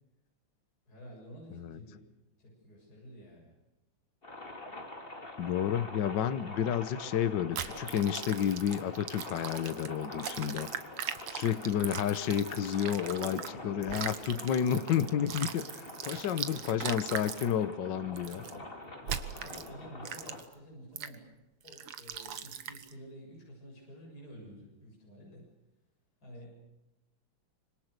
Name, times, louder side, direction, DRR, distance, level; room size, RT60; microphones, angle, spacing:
voice 1, 0.9-2.0 2.4-3.5 19.4-21.3 21.6-25.5 26.2-26.7, equal, 45° left, -2 dB, 7.6 m, -50 dB
sound 1, 4.2-20.4, left 2 dB, 25° left, 2.9 m, -45 dB
voice 2, 5.4-10.7 11.3-18.4, left 9 dB, 60° left, 12 dB, 1.7 m, -31 dB
sound 2, 7.6-13.5 13.8-17.5 18.2-18.5 19.1-19.7 20.1-20.5 21.0-21.2 21.7-22.9, right 8 dB, 85° right, 2.2 m, -40 dB
26.0 x 26.0 x 6.7 m, 0.96 s
omnidirectional pair, 2.4 m